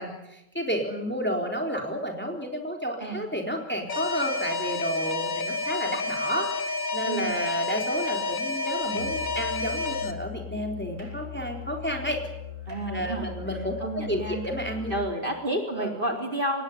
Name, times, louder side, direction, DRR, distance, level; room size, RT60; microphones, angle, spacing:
voice 1, 0.0-6.5 6.9-12.2 12.9-14.9 15.7-15.9, equal, 5° left, 2 dB, 3.9 m, -31 dB
Alarm, 3.9-10.1, left 3 dB, 60° left, 2.0 m, -30 dB
voice 2, 7.0-7.4 12.7-13.3 13.8-14.4 14.9-16.6, right 1 dB, 35° right, 2 dB, 4.3 m, -30 dB
Musical instrument, 8.9-15.2, left 7 dB, 55° right, 8.2 m, -40 dB
26.5 x 20.0 x 9.5 m, 0.85 s
omnidirectional pair, 1.6 m